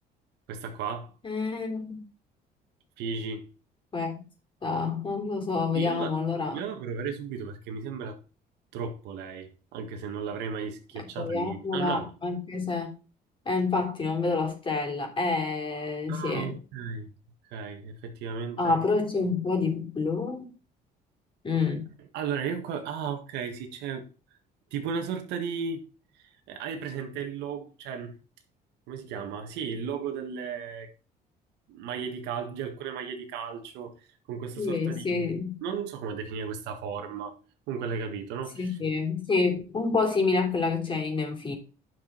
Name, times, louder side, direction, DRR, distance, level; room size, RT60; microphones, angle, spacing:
voice 1, 0.5-1.1 3.0-3.5 5.7-6.1 6.5-8.2 8.7-12.1 16.1-17.1 17.4-18.8 21.6-21.7 22.1-24.1 24.7-25.8 26.2-28.1 28.9-30.9 31.7-35.3 35.6-37.3 37.7-38.7, right 6 dB, 90° right, 1.6 m, -35 dB
voice 2, 1.2-2.0 3.9-4.2 4.6-6.6 11.1-12.9 13.4-16.5 18.6-20.5 21.4-21.9 34.6-35.6 38.5-41.5, left 4 dB, 30° left, 3.4 m, -28 dB
10.5 x 6.1 x 4.4 m
cardioid pair, 110°, 17 cm